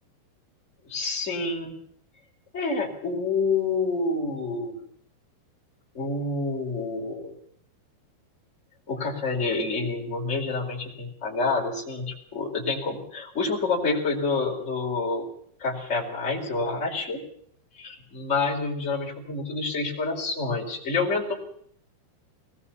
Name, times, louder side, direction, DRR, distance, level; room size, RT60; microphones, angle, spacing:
voice 1, 0.8-1.7 2.5-4.8 5.9-7.3 8.9-15.2 15.6-17.2 17.7-21.3, left 3 dB, 15° left, -2 dB, 4.5 m, -28 dB
22.0 x 19.0 x 7.2 m, 0.65 s
omnidirectional pair, 4.9 m